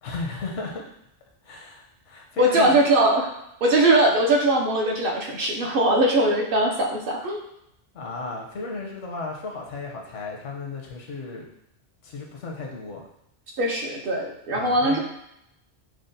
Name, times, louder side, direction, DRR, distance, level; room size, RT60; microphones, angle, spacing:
voice 1, 0.0-0.9 1.4-2.8 7.9-11.5 12.0-13.0 14.5-15.0, left 3 dB, 85° left, 0 dB, 1.1 m, -34 dB
voice 2, 2.4-3.3 3.6-7.5 13.6-15.0, right 1 dB, 55° right, 0 dB, 0.8 m, -21 dB
6.1 x 2.2 x 2.6 m, 0.80 s
omnidirectional pair, 1.2 m